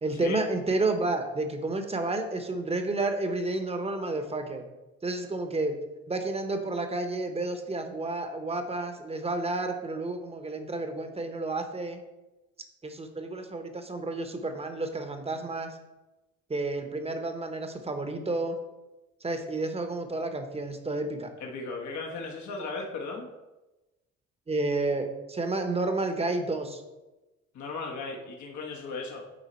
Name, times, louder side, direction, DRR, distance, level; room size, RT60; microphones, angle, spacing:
voice 1, 0.0-4.6 5.0-5.8 6.1-12.0 12.8-15.8 16.5-18.6 19.2-21.3 22.6-22.7 24.5-26.8, right 2 dB, 20° right, 6 dB, 1.0 m, -31 dB
voice 2, 21.4-23.3 27.5-29.2, left 3 dB, 70° left, 0 dB, 1.3 m, -36 dB
9.3 x 3.9 x 4.4 m, 1.1 s
cardioid pair, 90°, 30 cm